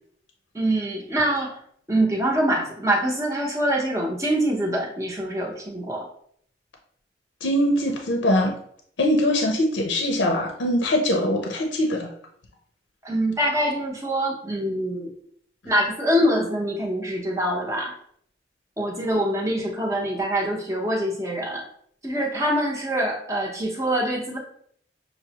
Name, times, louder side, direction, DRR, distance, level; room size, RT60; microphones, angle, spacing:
voice 1, 0.5-1.6 1.9-6.1 13.0-15.1 15.6-17.9 18.8-21.6 22.0-24.4, right 1 dB, 15° right, -1 dB, 0.7 m, -24 dB
voice 2, 7.4-8.5 9.0-12.1, left 1 dB, 85° left, 2 dB, 0.6 m, -22 dB
6.0 x 2.1 x 2.8 m, 0.64 s
head